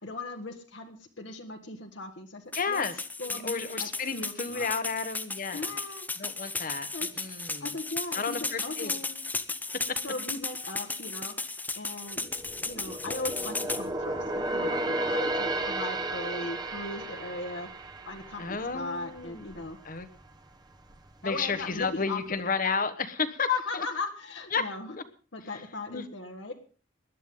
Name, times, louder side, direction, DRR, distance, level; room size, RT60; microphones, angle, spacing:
voice 1, 0.0-2.8 3.2-4.7 5.5-6.1 6.9-7.1 7.6-9.2 10.0-11.3 11.7-12.3 12.6-17.7 18.1-19.8 21.2-22.4 23.5-24.9 25.3-26.5, left 3 dB, 65° left, 2 dB, 1.6 m, -38 dB
voice 2, 2.5-2.9 3.3-5.7 6.2-6.9 7.1-7.7 8.1-8.9 18.4-20.1 21.2-23.5 23.7-23.8 24.5-24.6 25.9-26.0, left 5 dB, 45° left, 12 dB, 1.2 m, -32 dB
sound 1, 2.5-13.8, left 3 dB, 10° left, 0.7 m, -35 dB
sound 2, 12.1-19.7 20.0-20.3 20.8-21.5 21.8-21.9, right 1 dB, 20° right, 1.2 m, -33 dB
19.5 x 11.5 x 3.8 m, 0.39 s
head